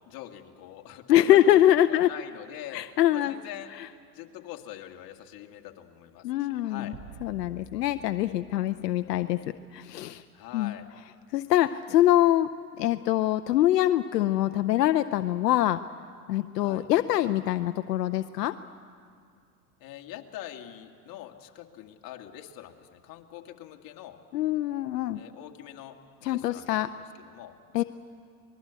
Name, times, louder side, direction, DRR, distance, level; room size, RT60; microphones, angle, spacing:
voice 1, 0.1-3.7 4.1-7.0 10.3-10.9 16.5-16.9 19.8-24.2 25.1-26.0 26.3-26.9 27.2-27.8, left 12 dB, 45° left, 3 dB, 2.0 m, -44 dB
voice 2, 1.1-2.1 2.7-3.3 3.8-3.9 6.2-6.9 7.2-9.4 9.7-10.2 10.5-10.7 11.3-12.5 12.8-15.8 16.3-18.5 24.3-25.2 26.2-26.9 27.7-27.8, left 13 dB, 85° left, 11 dB, 0.7 m, -24 dB
sound 1, 6.9-9.5, right 7 dB, 25° right, 1.3 m, -50 dB
24.5 x 21.0 x 8.2 m, 2.3 s
hypercardioid pair, 100°, 47 cm